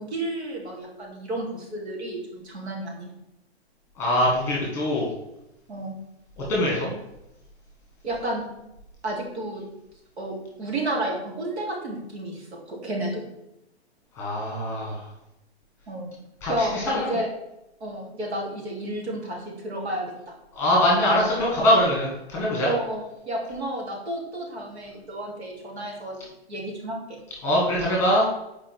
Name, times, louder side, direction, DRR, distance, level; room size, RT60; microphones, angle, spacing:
voice 1, 0.0-3.1 5.7-5.9 8.0-8.5 9.0-9.6 10.2-13.2 15.9-16.1 16.5-17.3 17.8-20.1 22.6-26.2 26.5-27.2, right 1 dB, 85° right, -2 dB, 3.0 m, -31 dB
voice 2, 4.0-5.1 6.4-6.9 14.2-15.1 16.4-17.2 20.5-22.7 27.4-28.3, left 1 dB, 10° left, -4 dB, 1.4 m, -23 dB
7.4 x 4.8 x 4.5 m, 0.88 s
hypercardioid pair, 175°, 32 cm